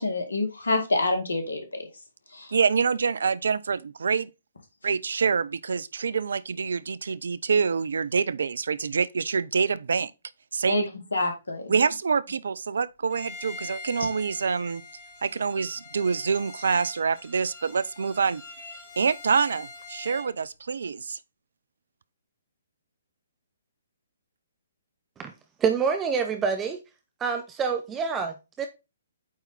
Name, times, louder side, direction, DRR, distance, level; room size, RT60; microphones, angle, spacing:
voice 1, 0.0-1.9 2.3-2.5 10.7-11.7, left 2 dB, 70° left, 2.1 m, -27 dB
voice 2, 2.5-4.3 4.8-10.1 10.5-10.9 11.7-14.8 15.2-18.4 19.0-21.2, right 5 dB, 60° right, 0.5 m, -26 dB
Bowed string instrument, 13.1-20.3, left 3 dB, 35° left, 3.6 m, -44 dB
voice 3, 25.6-26.8 27.2-28.7, right 6 dB, 15° right, 0.7 m, -27 dB
8.6 x 4.0 x 4.0 m
figure-of-eight pair, 125°, 0 cm